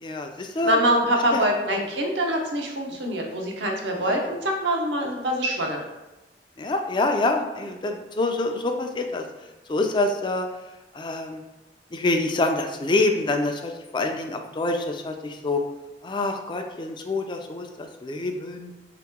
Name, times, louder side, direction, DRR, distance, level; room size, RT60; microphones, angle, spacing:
voice 1, 0.0-0.8 1.3-1.5 3.1-3.2 4.1-4.3 6.6-9.2 9.7-10.5 10.9-11.4 11.9-15.6 16.0-18.7, left 2 dB, 25° left, 4 dB, 0.4 m, -26 dB
voice 2, 0.6-5.8, right 1 dB, 85° right, 1 dB, 0.7 m, -24 dB
3.5 x 2.9 x 3.5 m, 1.0 s
head